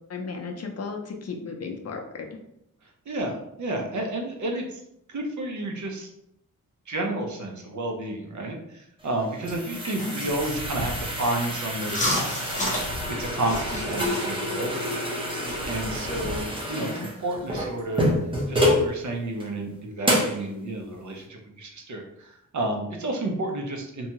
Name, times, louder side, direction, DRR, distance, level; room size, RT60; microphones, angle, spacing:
voice 1, 0.1-2.3 10.0-10.1 16.8-17.2, left 4 dB, 50° left, 2 dB, 0.5 m, -35 dB
voice 2, 3.1-4.8 5.1-6.1 6.9-15.0 15.7-18.1 18.5-24.1, right 1 dB, 60° right, 2 dB, 0.6 m, -31 dB
sound 1, 9.0-18.9 19.4-19.5 20.0-20.4, equal, 15° right, 0.8 m, -28 dB
sound 2, 9.9-16.4, equal, 20° left, 0.8 m, -33 dB
2.7 x 2.2 x 2.8 m, 0.79 s
wide cardioid pair, 105°, 33 cm